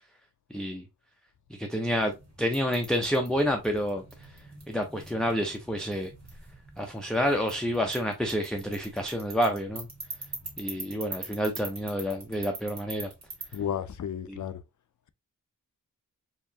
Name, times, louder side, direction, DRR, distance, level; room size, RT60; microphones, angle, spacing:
voice 1, 0.5-0.8 1.6-2.1 2.4-4.0 4.7-6.1 6.8-9.9 10.6-13.1 14.3-14.4, equal, ahead, 0.5 m, -28 dB
sound 1, 1.9-13.5, right 2 dB, 55° right, 1.7 m, -44 dB
voice 2, 13.5-14.6, left 9 dB, 65° left, 0.5 m, -32 dB
4.6 x 2.8 x 2.7 m
wide cardioid pair, 140°, 32 cm